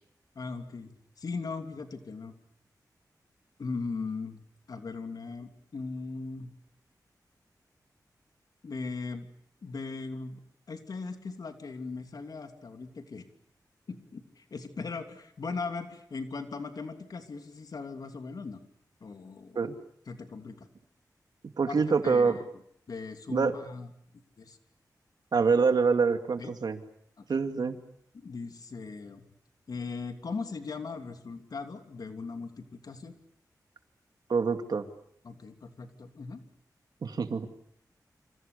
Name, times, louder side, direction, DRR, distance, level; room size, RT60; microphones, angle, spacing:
voice 1, 0.3-2.3 3.6-4.4 4.7-6.5 8.6-9.3 9.6-10.4 10.7-13.2 13.9-18.6 19.0-19.7 20.1-20.7 21.7-22.4 22.9-23.9 24.4-24.6 26.4-26.5 27.2-27.4 28.1-29.3 29.7-33.1 35.2-36.4, left 4 dB, 65° left, 6 dB, 3.0 m, -39 dB
voice 2, 21.6-22.4 23.3-23.6 25.3-26.8 27.3-27.8 34.3-34.9 37.0-37.5, right 5 dB, 75° right, 7 dB, 2.5 m, -25 dB
28.0 x 27.5 x 6.9 m, 0.66 s
wide cardioid pair, 120°, 7 cm